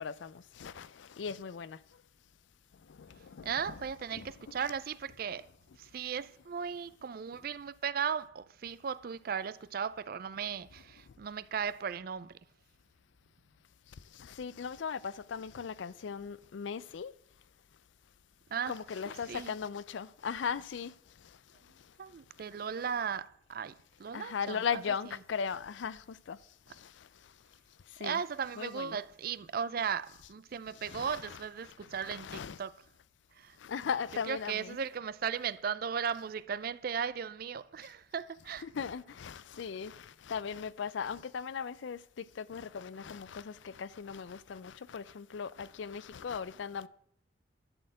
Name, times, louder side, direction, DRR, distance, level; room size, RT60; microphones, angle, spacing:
voice 1, 0.0-1.8 3.0-3.8 4.1-4.6 14.2-17.1 18.7-20.9 24.1-26.4 26.8-26.9 28.0-28.2 28.6-29.0 30.8-32.6 33.6-34.8 38.6-46.9, left 6 dB, 70° left, 0.4 m, -38 dB
voice 2, 3.4-5.5 5.8-12.4 18.5-18.7 19.1-19.5 22.0-24.8 28.0-32.7 33.4-33.6 34.3-38.6, right 7 dB, 50° right, 0.4 m, -36 dB
11.5 x 4.3 x 7.8 m
head